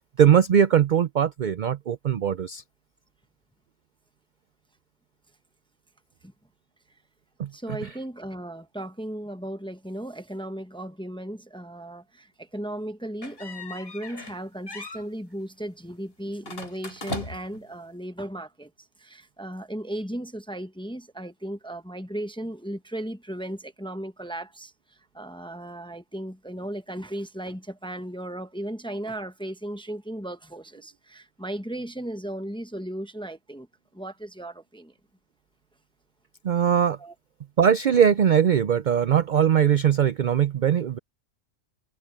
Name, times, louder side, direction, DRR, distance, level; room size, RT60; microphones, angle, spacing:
voice 1, 0.2-2.6 7.4-7.5 36.4-37.0 37.6-41.0, right 8 dB, 55° right, 0.5 m, -20 dB
voice 2, 7.5-18.7 19.0-24.7 25.1-33.7 33.9-34.9 37.0-37.1, right 1 dB, 5° left, 0.7 m, -36 dB
sound 1, 13.2-14.4 14.7-15.1 16.4-17.6, left 2 dB, 45° left, 3.7 m, -37 dB
omnidirectional pair, 1.4 m